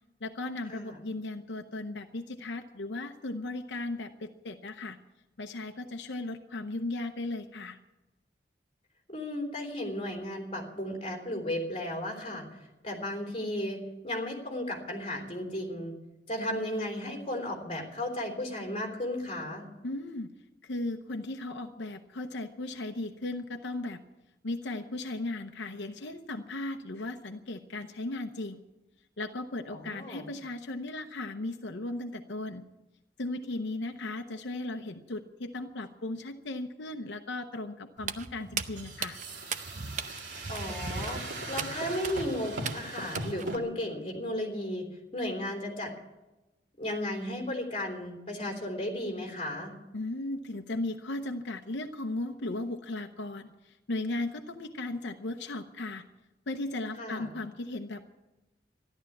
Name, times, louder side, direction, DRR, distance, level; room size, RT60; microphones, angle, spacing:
voice 1, 0.2-5.0 5.4-7.8 19.8-20.3 20.6-24.0 24.4-28.6 29.2-32.7 33.2-39.2 49.9-56.0 56.5-58.0, left 2 dB, 85° left, 6 dB, 0.8 m, -36 dB
voice 2, 9.1-12.4 12.8-13.8 14.0-15.9 16.3-19.6 29.7-30.3 40.5-44.9 45.1-45.9 46.8-49.7 57.0-57.3, left 1 dB, 30° left, 2 dB, 3.4 m, -34 dB
Walk footsteps, 38.0-43.6, right 6 dB, 45° right, 0.7 m, -39 dB
sound 1, 38.8-43.6, right 2 dB, 80° right, 2.7 m, -39 dB
13.5 x 11.5 x 8.4 m, 1.1 s
head